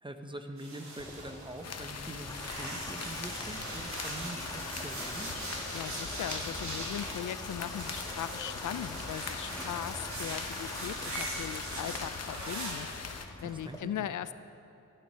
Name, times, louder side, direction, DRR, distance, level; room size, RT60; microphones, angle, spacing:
voice 1, 0.0-5.3 13.4-14.1, right 1 dB, 15° right, 6 dB, 0.9 m, -44 dB
sound 1, 0.6-2.0 2.3-12.7, right 2 dB, 70° right, 3.2 m, -42 dB
Water tap faucet / Bathtub (filling or washing), 1.0-13.8, left 1 dB, 10° left, 1.6 m, -44 dB
sound 2, 1.6-13.3, left 5 dB, 60° left, 0.9 m, -42 dB
voice 2, 5.7-14.3, left 10 dB, 85° left, 14 dB, 0.5 m, -39 dB
15.0 x 9.4 x 5.6 m, 2.8 s
wide cardioid pair, 95°, 30 cm